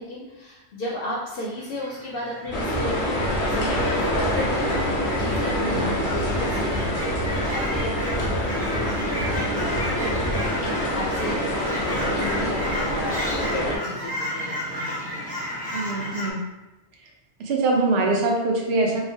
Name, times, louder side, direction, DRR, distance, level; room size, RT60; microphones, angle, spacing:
voice 1, 0.0-15.4, left 1 dB, 65° left, -5 dB, 0.7 m, -34 dB
Fowl / Chirp tweet, 1.6-16.3, equal, 10° left, 0.6 m, -33 dB
sound 1, 2.5-13.8, equal, 85° left, 1.0 m, -26 dB
sound 2, 2.5-10.4, right 1 dB, 40° right, 0.6 m, -33 dB
voice 2, 15.7-16.4 17.4-19.0, right 2 dB, 70° right, 0 dB, 0.8 m, -23 dB
2.9 x 2.0 x 2.6 m, 1.0 s
omnidirectional pair, 1.1 m